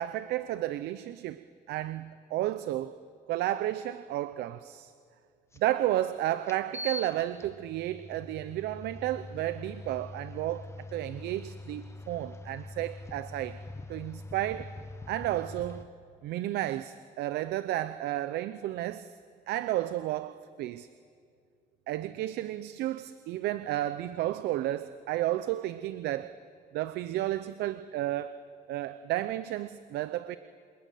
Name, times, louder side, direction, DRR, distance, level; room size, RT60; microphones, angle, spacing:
voice 1, 0.0-2.9 3.3-4.9 5.6-13.6 13.9-14.7 15.1-15.9 16.2-19.1 19.5-20.9 21.9-26.4 26.7-28.4 28.7-30.4, right 14 dB, 80° right, 0.7 m, -32 dB
sound 1, 5.5-5.6 6.4-15.8, left 2 dB, 15° left, 1.3 m, -43 dB
27.5 x 21.0 x 9.4 m
cardioid pair, 110°, 17 cm